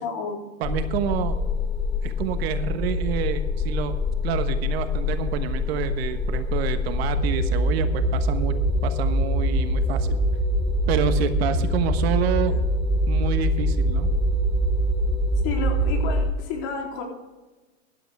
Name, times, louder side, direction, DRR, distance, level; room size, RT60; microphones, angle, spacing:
voice 1, 0.0-0.4 15.4-17.0, left 5 dB, 45° left, 1 dB, 3.4 m, -30 dB
sound 1, 0.6-16.3, left 1 dB, 15° left, 1.1 m, -24 dB
voice 2, 0.6-1.4 2.0-3.9 4.2-8.5 8.8-10.2 10.9-12.6 13.1-14.1, right 8 dB, 55° right, 9 dB, 1.3 m, -28 dB
16.0 x 11.0 x 3.5 m, 1.2 s
hypercardioid pair, 125°, 38 cm